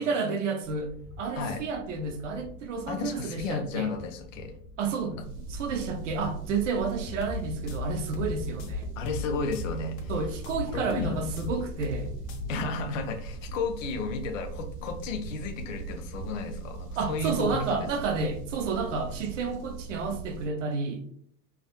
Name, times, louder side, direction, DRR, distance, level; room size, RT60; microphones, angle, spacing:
voice 1, 0.0-3.9 4.8-5.2 5.5-8.9 10.1-12.1 17.0-21.1, right 4 dB, 50° right, 0.5 m, -31 dB
sound 1, 0.6-18.0, equal, ahead, 0.8 m, -48 dB
voice 2, 2.9-4.6 9.0-10.1 10.7-11.3 12.5-17.9, left 3 dB, 55° left, 0.5 m, -33 dB
sound 2, 5.2-20.5, right 4 dB, 70° right, 1.0 m, -40 dB
sound 3, 7.0-12.5, left 5 dB, 80° left, 0.8 m, -38 dB
3.5 x 2.1 x 2.2 m
supercardioid pair, 180°, 49 cm